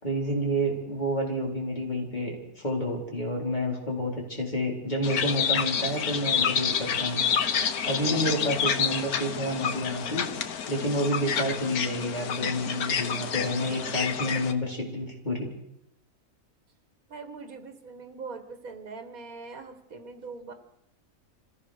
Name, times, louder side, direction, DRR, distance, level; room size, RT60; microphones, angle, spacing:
voice 1, 0.0-7.2 7.8-10.3 10.7-15.5, equal, 30° left, -1 dB, 4.4 m, -29 dB
sound 1, 5.0-14.5, left 7 dB, 90° left, 1.5 m, -29 dB
voice 2, 17.1-20.5, right 4 dB, 75° right, 6 dB, 2.2 m, -42 dB
25.5 x 16.0 x 6.6 m, 0.82 s
omnidirectional pair, 1.5 m